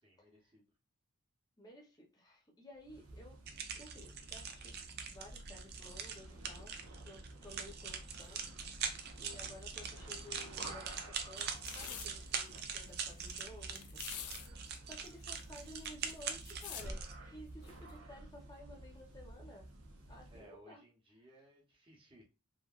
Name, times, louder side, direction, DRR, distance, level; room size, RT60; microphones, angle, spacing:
voice 1, 0.0-0.6 13.4-14.0 20.3-22.2, right 1 dB, 25° right, -1 dB, 0.8 m, -62 dB
voice 2, 1.6-3.4 3.7-4.8 5.1-6.8 7.0-8.8 9.2-14.5 14.8-19.7 20.1-20.8, left 1 dB, 15° left, 0 dB, 0.6 m, -55 dB
sound 1, 2.8-20.5, right 1 dB, 90° right, 0.8 m, -52 dB
sound 2, 3.5-17.1, right 6 dB, 45° right, 0.4 m, -43 dB
sound 3, 11.4-12.1 12.6-12.7 12.9-13.4 13.8-14.5 14.8-14.9 15.1-16.9 17.7-17.9, left 8 dB, 80° left, 0.4 m, -46 dB
3.0 x 2.6 x 2.3 m, 0.30 s
head